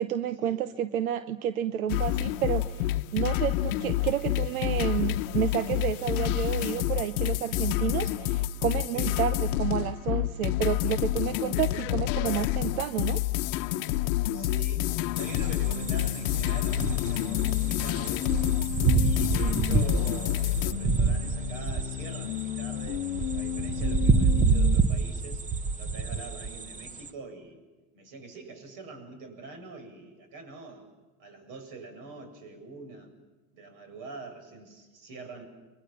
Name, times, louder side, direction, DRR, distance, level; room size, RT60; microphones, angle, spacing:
voice 1, 0.0-13.2, right 10 dB, 90° right, 12 dB, 1.0 m, -30 dB
sound 1, 1.9-20.7, left 15 dB, 65° left, 1.0 m, -28 dB
voice 2, 14.3-18.3 18.9-23.1 23.3-25.4 25.8-27.6 27.9-30.9 31.2-33.1 33.5-35.4, right 3 dB, 50° right, 7 dB, 7.8 m, -44 dB
sound 2, 14.8-24.8, left 12 dB, 85° left, 0.9 m, -35 dB
sound 3, 15.2-27.1, right 4 dB, 20° right, 1.1 m, -28 dB
30.0 x 23.5 x 7.3 m, 1.2 s
hypercardioid pair, 105°, 41 cm